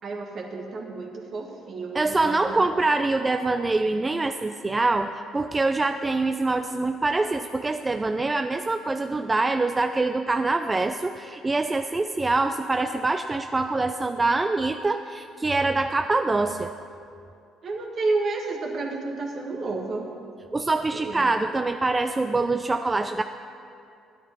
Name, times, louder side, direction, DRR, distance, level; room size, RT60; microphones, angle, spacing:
voice 1, 0.0-2.7 17.6-20.1 20.9-21.3, right 3 dB, 55° right, 1 dB, 1.6 m, -31 dB
voice 2, 1.9-16.7 20.5-23.2, right 3 dB, 25° right, 8 dB, 0.4 m, -24 dB
9.8 x 9.7 x 4.6 m, 2.5 s
hypercardioid pair, 60°, 0 cm